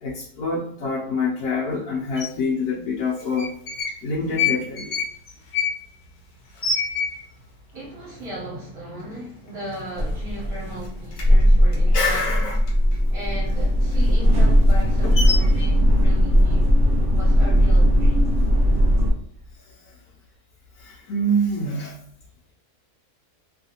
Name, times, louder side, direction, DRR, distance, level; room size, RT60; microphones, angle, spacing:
voice 1, 0.0-3.5 4.0-4.9 6.6-6.7 11.9-12.6 15.0-15.5 20.8-22.0, left 1 dB, 80° left, -5 dB, 1.2 m, -26 dB
sound 1, 2.2-2.3 3.2-4.0 4.3-7.5 7.8-7.9 8.2-8.7 9.1-9.3 9.6-10.4 10.6-13.0 13.4-15.7, left 5 dB, 60° left, 0.5 m, -28 dB
voice 2, 7.7-12.5 13.1-16.7 17.1-18.2, equal, 75° right, -8 dB, 1.4 m, -36 dB
sound 2, 10.0-19.1, equal, 50° right, 1.2 m, -18 dB
3.1 x 2.5 x 2.7 m, 0.67 s
omnidirectional pair, 1.6 m